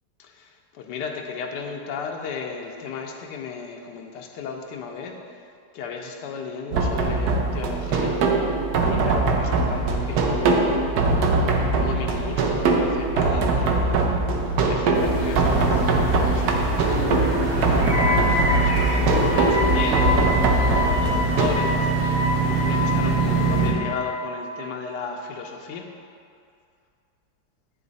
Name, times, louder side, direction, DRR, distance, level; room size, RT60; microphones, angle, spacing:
voice 1, 0.2-5.2 5.7-8.2 8.8-11.1 11.7-14.2 14.6-17.4 18.0-25.9, left 5 dB, 75° left, 2 dB, 1.2 m, -35 dB
sound 1, 6.7-21.5, right 3 dB, 70° right, 1.1 m, -22 dB
sound 2, 14.9-23.7, right 3 dB, 40° right, 1.5 m, -24 dB
Wind instrument woodwind instrument, 17.9-24.3, left 3 dB, 55° left, 1.7 m, -27 dB
9.4 x 3.1 x 3.9 m, 2.4 s
omnidirectional pair, 1.9 m